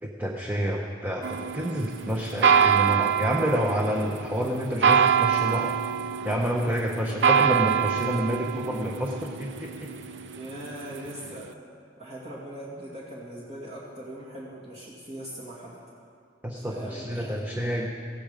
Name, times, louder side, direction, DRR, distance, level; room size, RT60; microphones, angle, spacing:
voice 1, 0.0-5.7 6.2-9.9 16.4-17.9, equal, 10° right, 0 dB, 1.0 m, -28 dB
sound 1, 1.2-11.4, right 7 dB, 75° right, 0.6 m, -25 dB
voice 2, 10.4-11.5 12.0-15.8 16.6-17.9, right 1 dB, 35° right, -6 dB, 2.3 m, -40 dB
18.5 x 14.5 x 5.1 m, 2.2 s
head